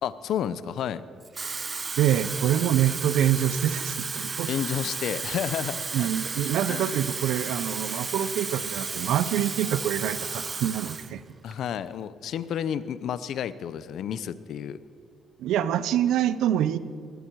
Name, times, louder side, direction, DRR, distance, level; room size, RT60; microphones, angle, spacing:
voice 1, 0.0-1.0 4.5-6.1 6.7-6.9 11.4-14.8, left 9 dB, 70° left, 15 dB, 0.7 m, -31 dB
Water tap faucet / Fill (with liquid), 1.2-11.1 11.5-11.8, right 4 dB, 35° right, 0.6 m, -33 dB
voice 2, 2.0-4.5 5.9-11.2 15.4-16.8, right 10 dB, 85° right, 15 dB, 0.6 m, -25 dB
19.5 x 13.0 x 4.7 m, 2.4 s
cardioid pair, 90°, 0 cm